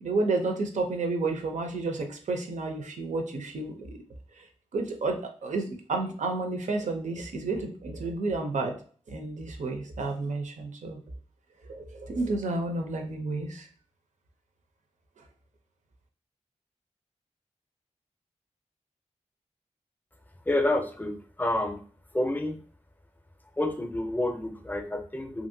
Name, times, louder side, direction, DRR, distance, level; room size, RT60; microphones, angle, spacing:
voice 1, 0.0-4.0 4.4-4.5 4.7-8.8 9.1-11.0 11.7-13.7 15.2-15.3, right 3 dB, 90° right, 4 dB, 0.5 m, -31 dB
voice 2, 20.5-21.8 22.1-22.6 23.6-25.5, left 1 dB, 15° left, 5 dB, 0.5 m, -29 dB
2.8 x 2.6 x 2.6 m, 0.43 s
wide cardioid pair, 85°, 12 cm